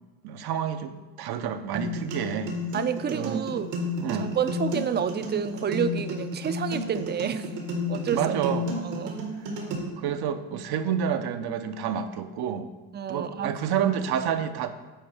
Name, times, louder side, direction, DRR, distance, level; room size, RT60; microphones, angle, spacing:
voice 1, 0.2-2.5 3.1-3.4 4.0-4.3 8.1-8.6 10.0-12.7 13.1-14.7, right 8 dB, 70° right, 8 dB, 0.7 m, -29 dB
sound 1, 1.7-9.7, left 1 dB, 90° right, 1.7 m, -32 dB
voice 2, 2.7-3.7 4.1-7.5 7.9-8.3 8.8-9.2 12.9-13.6, right 7 dB, 30° right, 11 dB, 0.4 m, -29 dB
8.9 x 4.3 x 3.4 m, 1.2 s
cardioid pair, 85°, 39 cm